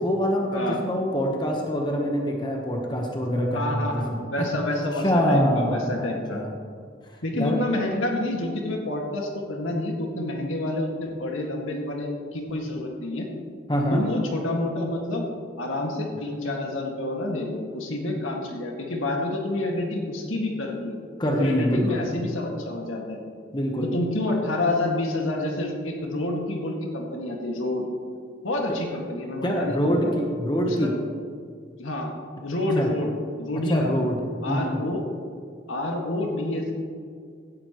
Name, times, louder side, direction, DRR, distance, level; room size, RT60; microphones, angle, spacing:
voice 1, 0.0-4.2 5.0-5.8 6.3-6.5 7.3-7.6 13.7-14.0 21.2-22.0 23.5-23.9 28.7-28.8 29.4-30.9 32.8-32.9 33.7-34.2 34.5-34.8, equal, 20° left, 1 dB, 1.1 m, -24 dB
voice 2, 3.5-6.4 7.2-13.3 13.9-15.3 15.6-21.0 21.4-23.2 23.8-27.9 28.4-30.1 30.6-30.9 31.8-32.1 32.4-33.1 33.4-34.1 34.4-35.0 35.7-36.7, left 1 dB, 90° left, 0 dB, 2.0 m, -28 dB
16.0 x 11.0 x 3.1 m, 2.1 s
head